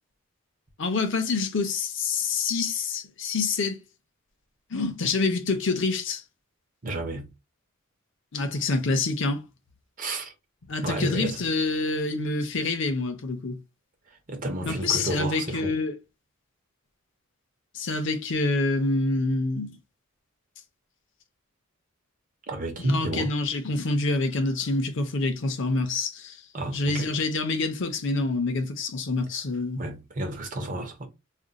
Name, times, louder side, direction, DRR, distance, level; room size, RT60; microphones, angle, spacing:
voice 1, 0.8-3.8 4.7-6.2 8.3-9.4 10.7-13.6 14.6-15.9 17.7-19.8 22.8-26.4 26.7-29.8, left 3 dB, 60° left, 0.6 m, -27 dB
voice 2, 6.8-7.3 10.0-10.3 10.8-11.4 14.3-15.7 22.5-23.3 26.5-27.1 29.8-31.1, right 1 dB, 40° right, 0.7 m, -31 dB
2.5 x 2.1 x 3.8 m
head